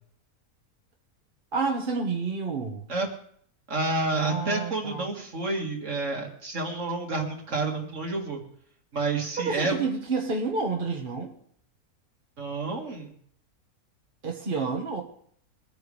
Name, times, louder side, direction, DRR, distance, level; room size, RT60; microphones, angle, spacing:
voice 1, 1.5-2.8 4.2-5.1 9.4-11.3 14.2-15.0, right 4 dB, 35° right, 0 dB, 1.5 m, -29 dB
voice 2, 3.7-8.4 8.9-9.8 12.4-13.1, right 3 dB, 55° right, 1 dB, 2.4 m, -29 dB
23.5 x 9.4 x 3.3 m, 0.63 s
omnidirectional pair, 1.6 m